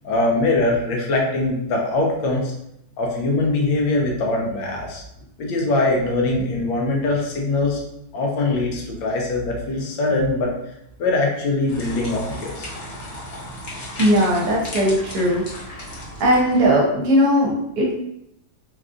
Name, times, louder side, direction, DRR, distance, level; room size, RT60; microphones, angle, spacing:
voice 1, 0.0-2.5 3.0-5.0 5.4-7.8 8.1-10.5 11.0-12.7, left 2 dB, 90° left, 0 dB, 1.5 m, -22 dB
sound 1, 11.7-16.7, left 1 dB, 50° left, 0.7 m, -35 dB
voice 2, 14.0-15.4 16.2-17.9, equal, 65° right, -2 dB, 1.1 m, -18 dB
4.0 x 2.4 x 2.4 m, 0.78 s
omnidirectional pair, 2.0 m